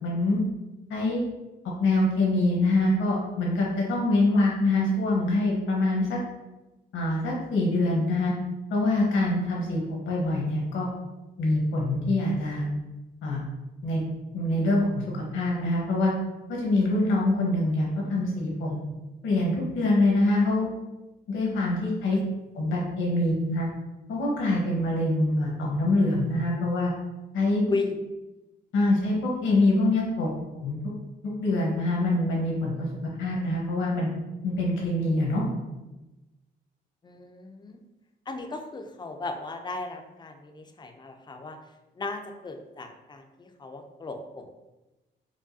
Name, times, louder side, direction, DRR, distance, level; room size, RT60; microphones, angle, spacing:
voice 1, 0.0-0.4 0.9-1.2 1.8-6.2 6.9-8.3 8.7-10.9 11.4-12.7 13.2-13.4 13.8-14.0 14.3-16.1 16.5-18.8 19.2-20.7 21.3-22.2 22.6-23.7 24.1-26.9 27.3-27.6 28.7-30.8 31.2-32.9 33.2-34.1 34.4-35.4, left 2 dB, 80° left, -3 dB, 1.1 m, -25 dB
voice 2, 37.0-37.8 38.3-41.6 42.0-44.5, left 3 dB, 20° left, 5 dB, 0.4 m, -35 dB
4.8 x 2.2 x 2.6 m, 1.0 s
cardioid pair, 90°, 20 cm